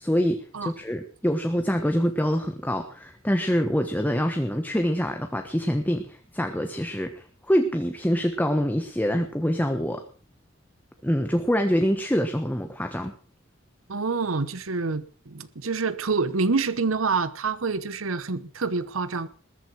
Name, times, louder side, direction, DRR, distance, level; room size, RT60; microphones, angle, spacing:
voice 1, 0.0-10.0 11.0-13.1, equal, 10° left, 1.4 m, -25 dB
voice 2, 13.9-19.3, right 4 dB, 80° right, 0.9 m, -27 dB
20.5 x 8.2 x 6.2 m
head